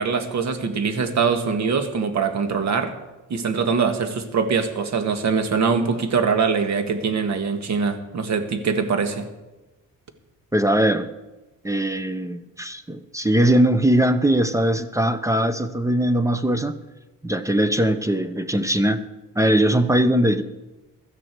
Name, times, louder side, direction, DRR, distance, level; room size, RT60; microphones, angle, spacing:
voice 1, 0.0-2.9 3.3-9.3, right 5 dB, 55° right, 8 dB, 1.8 m, -23 dB
voice 2, 10.5-11.1 11.6-16.7 17.2-19.0 19.4-20.4, right 1 dB, 10° right, 11 dB, 0.7 m, -20 dB
16.5 x 12.5 x 4.7 m, 1.1 s
cardioid pair, 110°, 34 cm